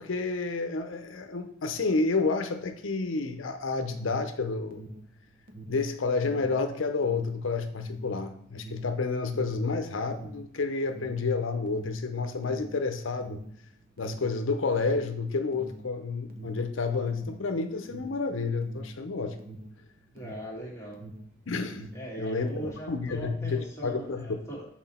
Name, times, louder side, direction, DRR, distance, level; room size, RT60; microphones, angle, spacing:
voice 1, 0.0-4.9 5.7-13.4 14.0-19.4 21.5-21.9 22.2-22.5 22.9-24.4, left 4 dB, 75° left, 7 dB, 0.7 m, -30 dB
Alarm, 3.9-21.4 21.6-22.9, right 2 dB, 50° right, 0.8 m, -45 dB
voice 2, 20.1-21.0 21.9-24.6, right 1 dB, 15° left, -4 dB, 1.6 m, -39 dB
6.0 x 4.4 x 4.2 m, 0.69 s
head